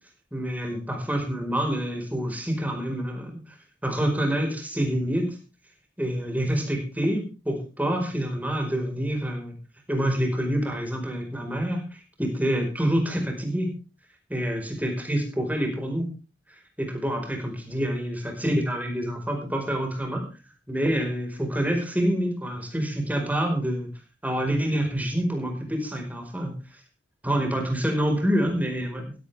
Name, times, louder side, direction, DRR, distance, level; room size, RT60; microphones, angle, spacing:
voice 1, 0.3-3.4 3.8-5.4 6.0-9.5 9.9-13.7 14.3-16.1 16.8-20.3 20.7-23.9 24.2-26.5 27.2-29.1, equal, 10° right, 3 dB, 4.9 m, -27 dB
16.0 x 15.5 x 3.5 m, 0.33 s
head